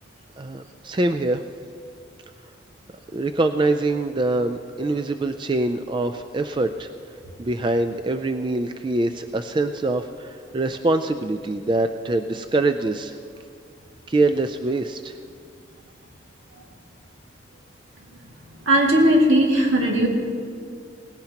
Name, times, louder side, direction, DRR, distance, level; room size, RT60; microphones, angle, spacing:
voice 1, 0.4-1.4 3.1-6.9 7.4-13.2 14.1-15.2, right 2 dB, 25° right, 8 dB, 0.3 m, -24 dB
voice 2, 18.7-20.1, right 1 dB, 80° right, 0 dB, 2.2 m, -17 dB
18.5 x 16.5 x 2.9 m, 2.2 s
head